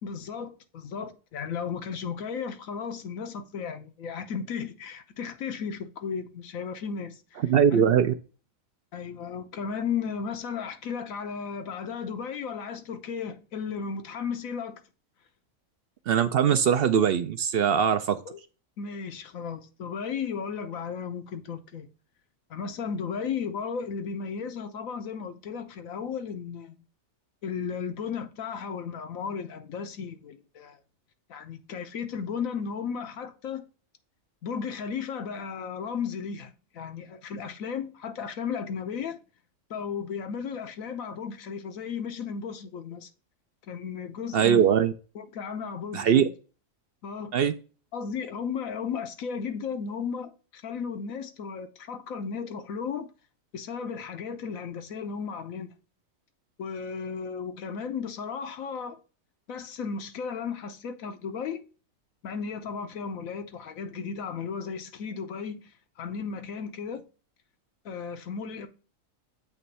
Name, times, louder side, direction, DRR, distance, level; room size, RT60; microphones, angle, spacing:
voice 1, 0.0-7.4 7.7-7.9 8.9-14.8 18.3-18.4 18.8-21.9 22.5-26.8 27.4-30.8 31.3-33.6 34.4-39.2 39.7-43.1 43.7-44.6 45.1-46.3 47.0-47.4 47.9-53.1 53.5-55.7 56.6-59.0 59.5-61.6 62.2-67.0 67.8-68.7, left 6 dB, 80° left, 1.3 m, -35 dB
voice 2, 7.4-8.1 16.1-18.2 44.3-44.9 45.9-46.3 47.3-47.5, right 8 dB, 65° right, 0.6 m, -21 dB
7.8 x 3.1 x 5.4 m
omnidirectional pair, 1.4 m